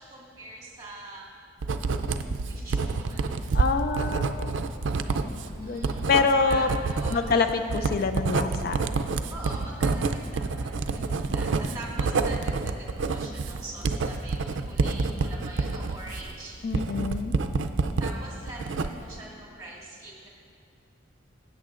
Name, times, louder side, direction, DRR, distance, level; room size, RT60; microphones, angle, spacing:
voice 1, 0.0-1.4 2.5-3.4 5.4-6.1 6.5-7.3 9.3-16.6 18.0-20.3, right 2 dB, 20° right, -4 dB, 1.8 m, -43 dB
Writing, 1.6-18.1 18.5-19.2, right 4 dB, 75° right, 0.4 m, -28 dB
voice 2, 3.5-4.6 5.6-6.7 7.1-8.8 16.6-17.4, left 4 dB, 50° left, 8 dB, 0.3 m, -26 dB
16.0 x 8.4 x 2.5 m, 2.4 s
head